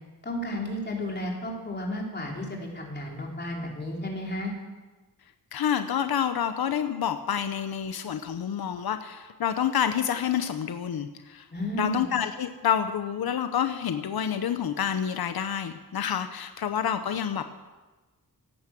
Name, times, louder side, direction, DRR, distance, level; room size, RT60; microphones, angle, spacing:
voice 1, 0.2-4.5 11.5-12.1, left 1 dB, 30° left, -1 dB, 3.5 m, -33 dB
voice 2, 5.5-11.5 11.7-17.5, left 8 dB, 90° left, 9 dB, 0.9 m, -28 dB
17.5 x 9.6 x 7.6 m, 1.2 s
wide cardioid pair, 135°, 36 cm